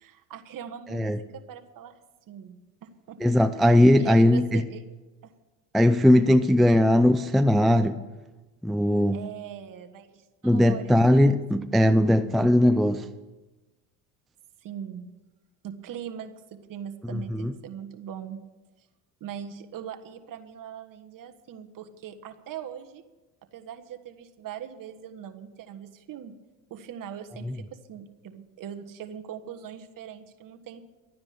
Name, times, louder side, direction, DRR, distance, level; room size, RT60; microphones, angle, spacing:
voice 1, 0.0-2.0 2.3-3.6 4.0-4.8 5.2-5.3 9.1-11.3 11.5-11.7 12.1-12.5 14.6-15.1 15.6-18.4 19.2-23.0 23.5-26.3 26.7-30.8, right 9 dB, 45° right, 1.5 m, -41 dB
voice 2, 3.2-4.6 5.7-8.0 8.6-9.2 10.4-13.1 17.1-17.5, left 1 dB, ahead, 0.5 m, -19 dB
12.5 x 9.5 x 8.6 m
supercardioid pair, 95°, 44 cm